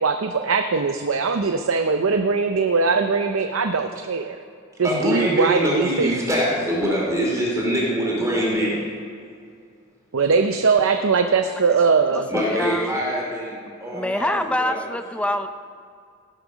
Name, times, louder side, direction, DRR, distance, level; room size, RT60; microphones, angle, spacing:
voice 1, 0.0-4.4 4.8-6.2 10.1-12.3, right 4 dB, 80° right, 6 dB, 0.6 m, -21 dB
voice 2, 4.8-8.8 12.3-14.8, equal, 15° right, -4 dB, 2.7 m, -24 dB
voice 3, 12.1-13.0 13.9-15.5, left 1 dB, 5° left, 8 dB, 0.5 m, -26 dB
17.0 x 6.7 x 6.3 m, 2.3 s
head